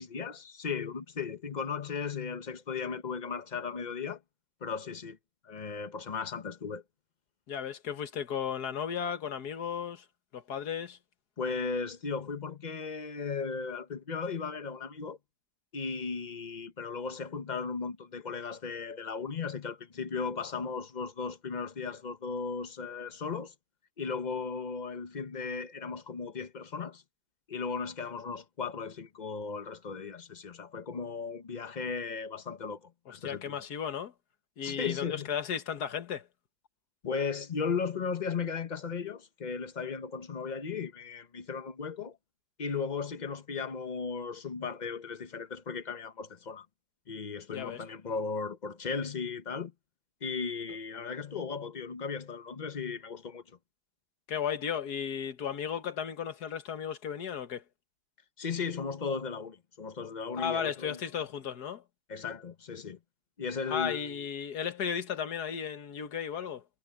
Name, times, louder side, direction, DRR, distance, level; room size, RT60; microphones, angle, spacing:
voice 1, 0.0-4.2 4.6-5.2 5.4-6.8 11.4-15.2 15.7-23.5 24.0-27.0 27.5-33.5 34.6-35.3 37.0-42.2 42.6-46.7 47.1-49.7 50.2-53.6 58.4-61.0 62.1-63.0 63.4-64.2, left 5 dB, 35° left, 0.9 m, -36 dB
voice 2, 7.5-10.1 10.3-11.0 33.2-34.1 34.6-36.3 47.5-47.8 54.3-57.6 60.4-61.8 63.7-66.7, left 8 dB, 75° left, 1.8 m, -35 dB
omnidirectional pair, 1.7 m